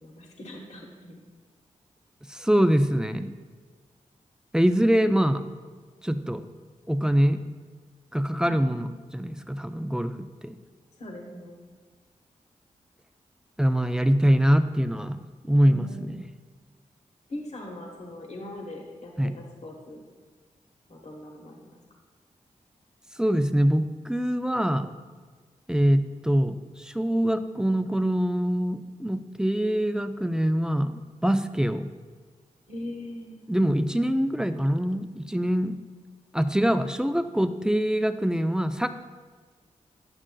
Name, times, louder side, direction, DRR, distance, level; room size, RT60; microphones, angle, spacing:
voice 1, 0.0-1.2 8.4-8.6 11.0-11.6 15.6-16.1 17.3-20.0 20.9-21.8 32.7-33.4, left 1 dB, 55° left, 0 dB, 1.1 m, -40 dB
voice 2, 2.3-3.3 4.5-5.4 6.0-6.5 6.9-7.4 8.1-10.5 13.6-16.1 19.2-19.3 23.2-24.9 25.7-31.9 33.5-35.7 36.3-39.0, equal, 5° right, 10 dB, 0.4 m, -24 dB
8.7 x 6.1 x 2.3 m, 1.5 s
cardioid pair, 45°, 14 cm